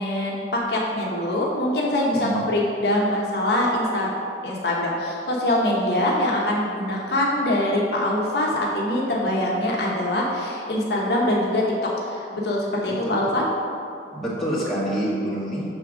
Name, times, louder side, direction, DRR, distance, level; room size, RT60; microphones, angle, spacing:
voice 1, 0.0-4.1 4.4-13.5, left 1 dB, 65° left, -3 dB, 1.0 m, -23 dB
voice 2, 14.1-15.6, right 1 dB, ahead, -10 dB, 1.6 m, -27 dB
6.7 x 3.5 x 6.0 m, 2.5 s
head